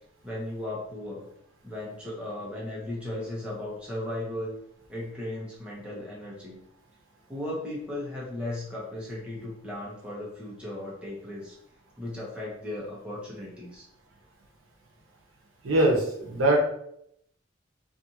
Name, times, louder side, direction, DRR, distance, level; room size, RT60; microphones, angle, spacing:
voice 1, 0.2-1.3 1.6-4.6 4.9-6.6 7.3-11.5 12.0-13.8, left 1 dB, 5° right, -6 dB, 0.8 m, -36 dB
voice 2, 15.6-16.6, right 1 dB, 80° right, 0 dB, 0.7 m, -22 dB
2.7 x 2.4 x 2.8 m, 0.72 s
head